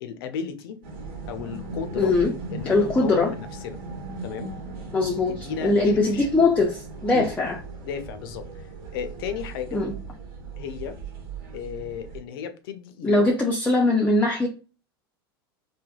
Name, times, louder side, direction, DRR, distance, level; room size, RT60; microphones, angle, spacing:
voice 1, 0.0-0.8 1.3-2.1 2.5-3.8 4.2-4.5 5.3-6.3 7.1-7.3 7.8-8.7 8.9-9.8 10.6-11.0 11.5-13.3, left 7 dB, 70° left, 9 dB, 0.6 m, -34 dB
sound 1, 0.8-12.2, right 3 dB, 70° right, 1.3 m, -38 dB
voice 2, 2.0-2.3 2.7-3.3 4.9-7.6 9.7-9.9 13.0-14.5, left 2 dB, 10° left, 0 dB, 0.5 m, -21 dB
3.3 x 2.2 x 2.3 m, 0.35 s
hypercardioid pair, 100°, 13 cm